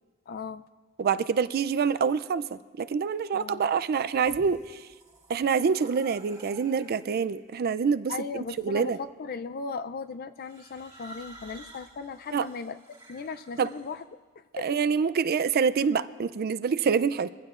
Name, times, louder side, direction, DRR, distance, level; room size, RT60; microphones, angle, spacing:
voice 1, 0.3-0.6 3.3-3.7 8.1-12.8 13.1-14.0 14.6-14.7, left 4 dB, 45° left, 13 dB, 0.4 m, -37 dB
voice 2, 1.0-4.8 5.3-9.0 12.3-12.5 13.6-13.7 14.5-17.3, right 6 dB, 45° right, 14 dB, 0.4 m, -26 dB
sound 1, 4.2-7.5 8.4-8.8 10.4-14.0, right 1 dB, 20° right, 1.9 m, -51 dB
23.5 x 15.0 x 2.5 m, 1.4 s
head